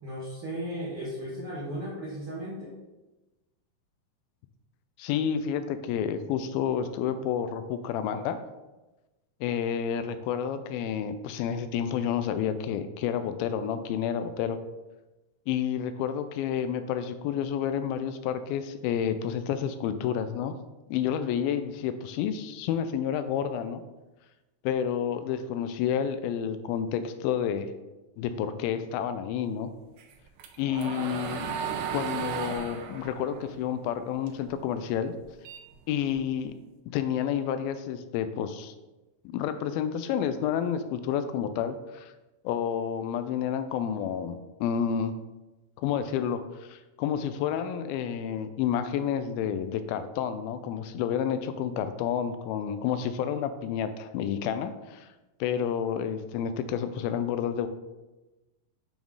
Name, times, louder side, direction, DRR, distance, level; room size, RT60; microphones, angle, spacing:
voice 1, 0.0-2.8, equal, 65° right, -6 dB, 1.4 m, -36 dB
voice 2, 5.0-8.4 9.4-14.6 15.5-20.6 20.9-23.8 24.6-27.7 28.2-29.7 30.6-31.6 31.9-35.1 35.9-36.5 36.9-38.7 39.3-42.1 42.4-45.1 45.8-55.1 55.4-57.7, left 8 dB, 85° left, 10 dB, 2.4 m, -30 dB
sound 1, 30.0-34.5 34.9-36.4, right 7 dB, 85° right, 1.7 m, -35 dB
7.1 x 3.8 x 4.7 m, 1.1 s
omnidirectional pair, 4.2 m